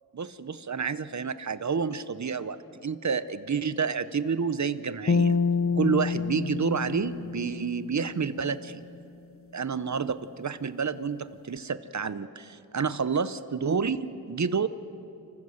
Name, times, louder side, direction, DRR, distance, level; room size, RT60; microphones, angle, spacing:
voice 1, 0.1-5.4 5.8-8.8 9.5-14.7, right 5 dB, 50° right, 14 dB, 0.8 m, -29 dB
sound 1, 5.1-8.4, left 5 dB, 35° left, 0.6 m, -28 dB
29.5 x 15.5 x 6.5 m, 2.8 s
wide cardioid pair, 80°, 38 cm